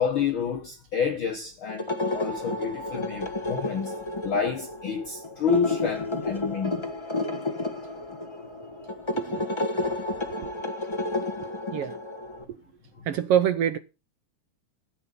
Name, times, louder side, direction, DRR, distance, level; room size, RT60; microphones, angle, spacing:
voice 1, 0.0-3.9 4.2-6.8, left 6 dB, 50° left, 2.0 m, -29 dB
sound 1, 1.7-12.4, left 2 dB, 15° left, 1.1 m, -31 dB
voice 2, 9.1-9.5 10.1-10.5 11.4-12.0 12.5-12.6 13.0-13.8, right 10 dB, 70° right, 1.6 m, -27 dB
14.5 x 8.5 x 6.7 m
omnidirectional pair, 3.4 m